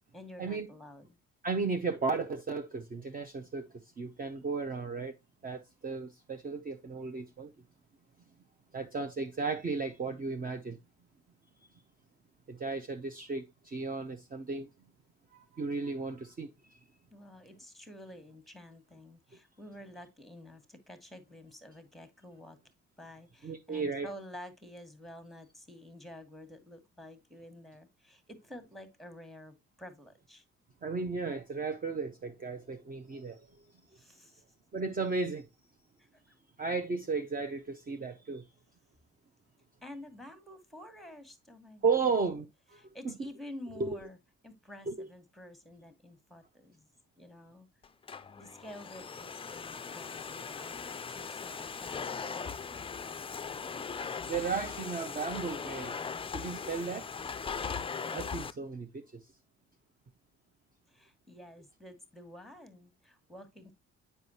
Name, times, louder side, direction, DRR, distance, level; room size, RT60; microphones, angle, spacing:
voice 1, 0.1-1.2 17.1-22.6 23.0-30.4 33.9-34.4 36.0-36.3 39.8-42.0 42.8-44.2 44.4-46.9 47.2-47.7 48.4-52.9 60.9-63.7, left 1 dB, ahead, 1.3 m, -50 dB
voice 2, 1.4-3.7 4.0-5.1 5.4-7.5 8.7-10.8 12.5-14.7 15.3-16.5 23.4-24.1 30.8-33.4 34.7-35.4 36.6-38.4 41.8-42.5 42.7-42.8 43.8-44.0 44.9-45.0 54.2-55.9 56.3-57.1 58.1-58.9, right 4 dB, 30° right, 0.6 m, -34 dB
Domestic sounds home sounds, 47.8-58.5, left 6 dB, 20° left, 0.3 m, -39 dB
7.6 x 5.4 x 2.7 m
cardioid pair, 90°, 30 cm